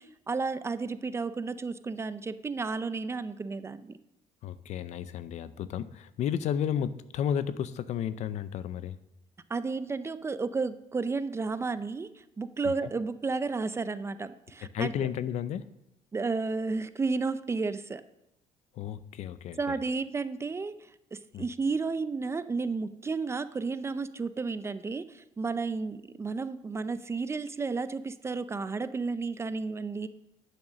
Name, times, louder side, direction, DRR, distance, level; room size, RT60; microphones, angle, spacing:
voice 1, 0.0-4.0 9.5-14.9 16.1-18.0 19.6-30.1, right 4 dB, 20° right, 13 dB, 0.5 m, -32 dB
voice 2, 4.4-9.0 14.7-15.7 18.8-19.8 21.3-21.4, left 9 dB, 60° left, 15 dB, 0.6 m, -32 dB
9.0 x 7.2 x 6.3 m, 0.86 s
cardioid pair, 125°, 13 cm